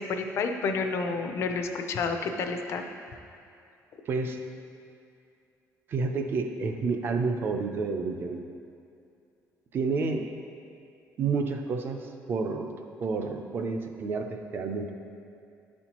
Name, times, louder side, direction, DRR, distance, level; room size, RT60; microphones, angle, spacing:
voice 1, 0.0-2.8, left 4 dB, 50° left, 5 dB, 0.5 m, -30 dB
voice 2, 4.1-4.4 5.9-8.4 9.7-10.3 11.2-12.7 13.0-14.9, right 4 dB, 35° right, 5 dB, 0.4 m, -30 dB
10.5 x 4.3 x 2.9 m, 2.5 s
cardioid pair, 170°, 6 cm